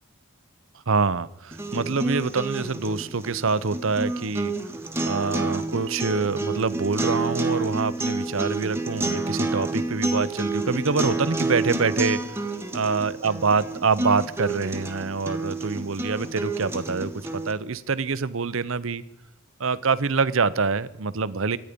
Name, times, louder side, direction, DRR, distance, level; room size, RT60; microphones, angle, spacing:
voice 1, 0.9-4.5 5.1-19.0 19.6-21.6, right 4 dB, 65° right, 17 dB, 0.7 m, -26 dB
sound 1, 1.5-17.5, right 2 dB, 10° right, 1.2 m, -29 dB
24.5 x 10.0 x 5.2 m, 0.91 s
head